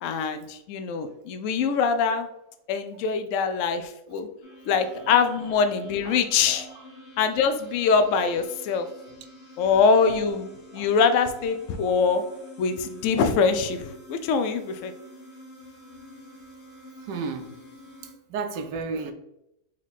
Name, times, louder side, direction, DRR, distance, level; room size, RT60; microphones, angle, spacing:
voice 1, 0.0-2.3 2.7-4.3 4.7-6.7 7.2-8.9 9.6-12.2 12.6-14.9, left 5 dB, 80° left, 0.7 m, -23 dB
sound 1, 4.4-18.1, left 1 dB, 60° left, 1.6 m, -48 dB
voice 2, 6.4-6.8 10.7-10.9 17.0-17.6 18.3-19.1, right 4 dB, 80° right, 1.2 m, -33 dB
4.4 x 3.0 x 4.0 m
omnidirectional pair, 1.9 m